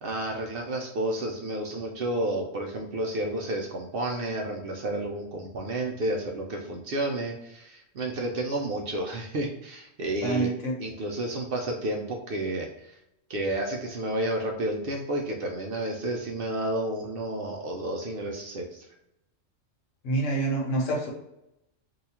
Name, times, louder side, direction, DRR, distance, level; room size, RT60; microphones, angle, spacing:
voice 1, 0.0-10.5 10.8-13.0 13.3-18.9, right 1 dB, 60° right, 0 dB, 0.6 m, -31 dB
voice 2, 10.2-10.8 20.0-21.1, right 2 dB, 75° left, -1 dB, 1.3 m, -27 dB
2.8 x 2.3 x 4.2 m, 0.85 s
omnidirectional pair, 1.3 m